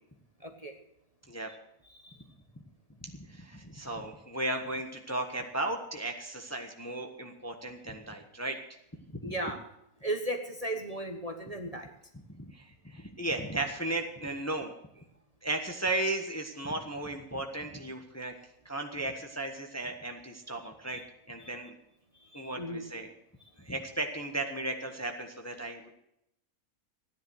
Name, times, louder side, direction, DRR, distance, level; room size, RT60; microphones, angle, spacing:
voice 1, 0.4-0.7 1.9-2.2 9.2-9.6 10.0-11.9 22.3-22.9, right 1 dB, 25° right, 4 dB, 1.2 m, -36 dB
voice 2, 3.0-8.6 9.1-9.3 12.1-15.0 15.4-18.3 18.6-21.0 21.3-21.8 22.3-23.1 23.6-25.9, right 2 dB, 10° left, 4 dB, 1.2 m, -35 dB
15.0 x 10.5 x 6.4 m, 0.80 s
omnidirectional pair, 1.6 m